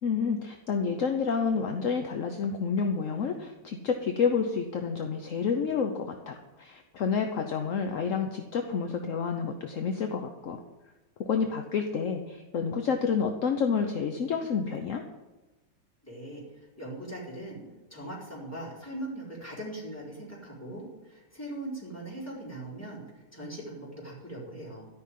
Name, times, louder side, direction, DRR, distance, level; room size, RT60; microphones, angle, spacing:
voice 1, 0.0-10.6 11.2-15.0, left 6 dB, 55° left, 5 dB, 0.9 m, -29 dB
voice 2, 16.0-17.6 17.9-24.8, right 1 dB, 5° left, -6 dB, 4.4 m, -40 dB
13.0 x 5.9 x 9.3 m, 1.1 s
omnidirectional pair, 2.1 m